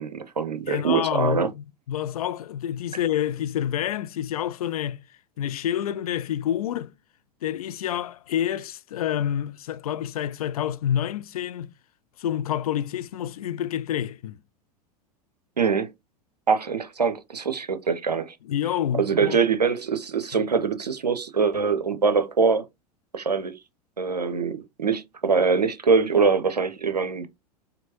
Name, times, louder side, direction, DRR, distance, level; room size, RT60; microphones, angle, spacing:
voice 1, 0.0-1.5 15.6-15.9 16.5-18.3 19.0-22.6 23.1-23.6 24.0-27.3, right 5 dB, 85° right, 0.6 m, -23 dB
voice 2, 0.7-5.0 5.4-6.9 7.4-11.7 12.2-14.4 18.5-19.4, left 10 dB, 65° left, 0.4 m, -28 dB
4.4 x 2.7 x 2.9 m
figure-of-eight pair, 85°, 20 cm